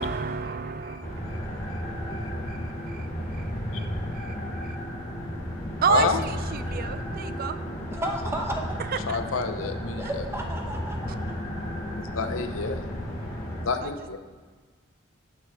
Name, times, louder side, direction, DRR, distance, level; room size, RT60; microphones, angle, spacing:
voice 1, 0.0-2.1 2.5-2.6 2.9-3.1 3.3-3.4 3.7-3.9 4.1-4.4 4.6-4.8 5.8-7.6 9.1-9.2 13.8-13.9, right 6 dB, 45° right, 12 dB, 0.4 m, -30 dB
sound 1, 1.0-13.6, equal, 15° left, 2.7 m, -33 dB
voice 2, 5.9-6.2 9.1-10.2 12.0-12.8 13.6-14.2, left 5 dB, 70° left, 8 dB, 0.7 m, -28 dB
voice 3, 7.9-8.7 10.0-11.3, right 1 dB, 10° right, 1 dB, 1.1 m, -33 dB
17.0 x 6.5 x 3.6 m, 1.5 s
head